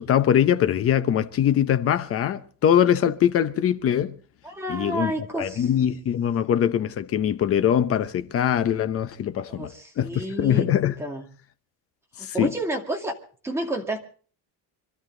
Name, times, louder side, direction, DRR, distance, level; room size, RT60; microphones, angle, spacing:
voice 1, 0.0-4.1 4.7-5.1 5.4-9.7 10.0-10.9 12.2-12.5, left 9 dB, 35° left, 0.9 m, -22 dB
voice 2, 4.4-5.7 9.5-10.7 11.0-11.3 12.2-13.1 13.4-14.0, right 1 dB, 5° right, 2.4 m, -30 dB
25.5 x 13.5 x 3.9 m
cardioid pair, 175°, 39 cm